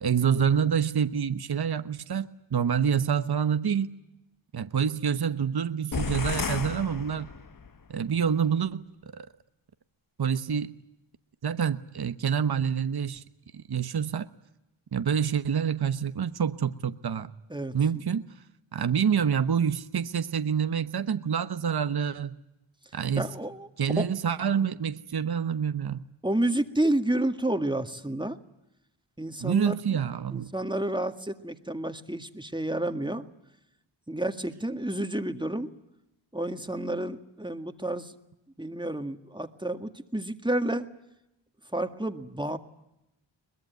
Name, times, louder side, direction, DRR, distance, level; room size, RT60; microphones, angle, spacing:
voice 1, 0.0-3.9 4.5-7.3 7.9-8.8 9.1-9.3 10.2-10.7 11.4-13.2 13.5-14.3 14.9-17.3 17.7-18.2 18.7-22.4 22.9-23.3 23.8-26.0 29.4-30.5, right 7 dB, 50° right, 12 dB, 1.1 m, -27 dB
sound 1, 5.9-7.8, left 5 dB, 40° left, 1.1 m, -33 dB
voice 2, 23.2-24.1 26.2-28.4 29.2-29.8 30.3-33.2 34.1-35.7 36.3-38.1 38.6-40.9 41.7-42.6, right 1 dB, 10° right, 7 dB, 1.9 m, -30 dB
23.0 x 21.0 x 9.3 m, 0.89 s
cardioid pair, 50°, 50 cm